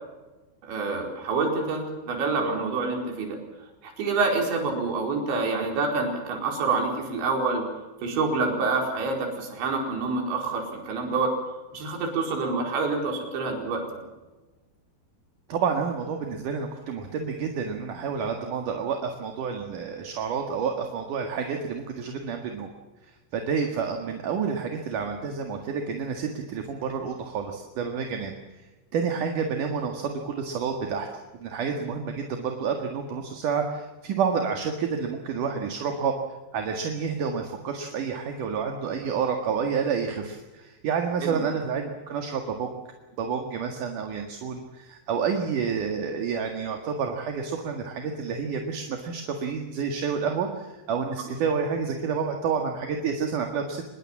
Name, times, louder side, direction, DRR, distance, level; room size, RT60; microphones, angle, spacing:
voice 1, 0.6-3.4 3.8-7.7 8.0-11.3 11.7-14.0 41.2-41.5, right 3 dB, 70° right, 1 dB, 7.0 m, -27 dB
voice 2, 15.5-22.7 23.3-28.3 28.9-31.1 31.4-36.1 36.5-42.7 43.2-53.9, right 6 dB, 55° right, 3 dB, 2.9 m, -29 dB
25.0 x 21.5 x 7.4 m, 1.1 s
omnidirectional pair, 5.4 m